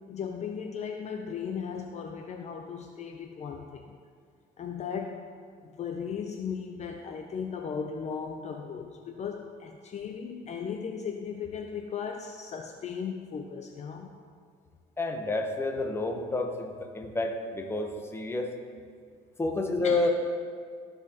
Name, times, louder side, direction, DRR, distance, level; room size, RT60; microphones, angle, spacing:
voice 1, 0.1-4.0 4.6-5.2 5.6-14.1 19.8-20.1, left 6 dB, 40° left, 3 dB, 0.5 m, -36 dB
voice 2, 15.0-18.5 19.4-20.1, left 2 dB, 15° left, 3 dB, 0.9 m, -29 dB
14.0 x 4.9 x 2.9 m, 2.1 s
cardioid pair, 110°, 17 cm